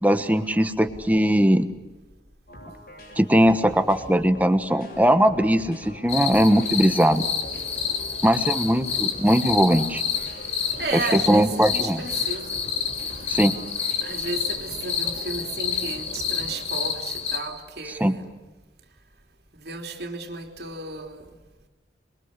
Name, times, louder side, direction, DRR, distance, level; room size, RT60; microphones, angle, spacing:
voice 1, 0.0-1.7 3.2-7.2 8.2-10.0 11.1-12.0 13.3-13.5 18.0-18.1, equal, 10° right, 1.2 m, -20 dB
sound 1, 2.5-16.8, equal, 55° left, 7.5 m, -43 dB
sound 2, 6.1-17.4, left 7 dB, 40° left, 3.8 m, -29 dB
voice 2, 10.8-12.6 14.0-18.4 19.6-21.3, right 3 dB, 60° right, 3.2 m, -33 dB
28.0 x 22.5 x 8.3 m
head